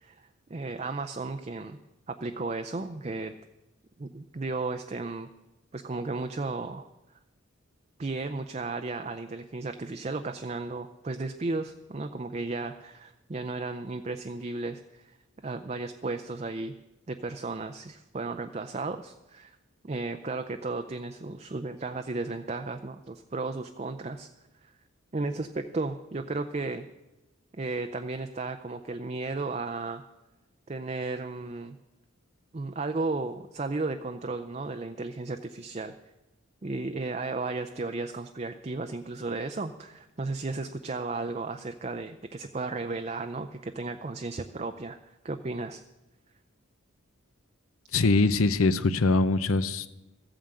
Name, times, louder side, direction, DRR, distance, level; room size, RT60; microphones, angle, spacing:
voice 1, 0.0-1.8 2.1-3.3 4.0-5.3 5.7-6.9 8.0-15.2 15.4-16.7 17.1-19.6 19.8-24.3 24.6-24.7 25.1-26.9 27.5-30.0 30.7-31.8 32.5-35.9 36.6-45.0 45.2-45.8, right 3 dB, 30° right, 8 dB, 0.5 m, -34 dB
voice 2, 47.9-50.0, left 3 dB, 85° left, 13 dB, 0.7 m, -23 dB
14.5 x 8.9 x 7.7 m, 1.0 s
head